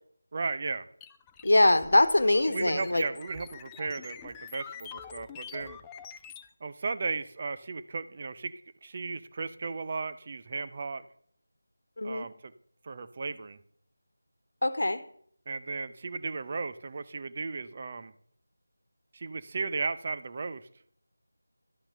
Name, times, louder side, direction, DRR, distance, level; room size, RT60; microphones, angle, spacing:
voice 1, 0.3-0.9 2.5-5.8 6.6-8.5 8.8-11.0 12.0-12.5 12.8-13.6 15.5-18.1 19.1-20.7, right 4 dB, 35° right, 12 dB, 0.7 m, -35 dB
sound 1, 1.0-6.5, left 8 dB, 10° left, 0.4 m, -47 dB
voice 2, 1.4-3.0 12.0-12.3 14.6-15.0, left 1 dB, 70° left, 12 dB, 1.2 m, -23 dB
12.0 x 5.9 x 6.7 m, 0.63 s
figure-of-eight pair, 165°, 0 cm